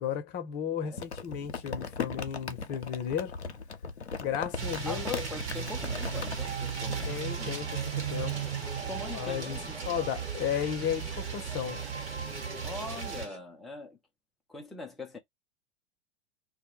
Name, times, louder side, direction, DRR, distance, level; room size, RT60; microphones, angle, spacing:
voice 1, 0.0-3.4 4.2-5.1 7.1-8.5 9.1-9.6 9.9-11.8, left 9 dB, 30° left, 0.7 m, -34 dB
Crumpling crinkling, 1.0-7.1, left 5 dB, 90° left, 0.5 m, -38 dB
sound 1, 4.6-13.3, right 7 dB, 60° right, 1.1 m, -36 dB
voice 2, 4.9-7.6 8.3-8.4 8.8-9.8 12.6-14.0 14.5-15.2, left 3 dB, ahead, 0.3 m, -41 dB
sound 2, 5.5-13.4, right 3 dB, 85° right, 1.0 m, -44 dB
2.1 x 2.1 x 2.9 m
figure-of-eight pair, 90°, 32 cm